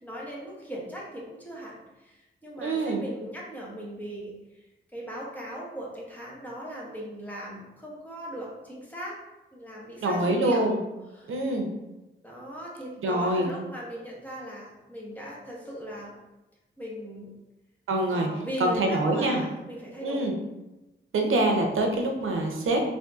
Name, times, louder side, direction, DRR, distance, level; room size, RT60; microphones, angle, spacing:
voice 1, 0.0-9.2 9.5-10.6 11.1-11.4 12.2-16.1 16.8-17.3 18.1-20.3, equal, 10° left, -4 dB, 0.8 m, -38 dB
voice 2, 2.6-3.0 10.0-10.8 11.3-11.7 13.0-13.5 17.9-18.3 18.6-19.4 20.0-20.3 21.1-22.8, right 2 dB, 85° right, 2 dB, 0.5 m, -25 dB
3.5 x 2.6 x 2.3 m, 1.0 s
wide cardioid pair, 115°, 20 cm